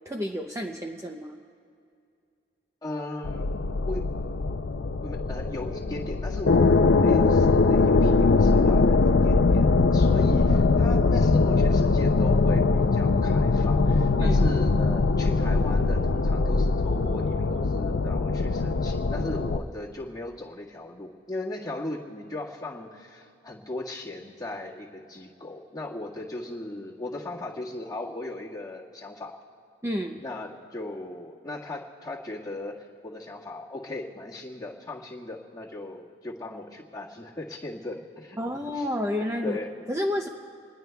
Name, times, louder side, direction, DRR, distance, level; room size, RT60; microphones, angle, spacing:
voice 1, 0.1-1.4 14.2-14.4 29.8-30.2 38.4-39.6 39.9-40.3, left 1 dB, 15° right, 2 dB, 0.5 m, -30 dB
voice 2, 2.8-3.5 3.8-4.0 5.0-9.0 9.2-29.4 30.2-38.4 38.7-38.9 39.4-39.7, left 2 dB, 20° left, -4 dB, 1.7 m, -37 dB
sound 1, 3.2-19.6, left 3 dB, 65° left, 0.5 m, -22 dB
27.5 x 20.0 x 2.3 m, 2.4 s
head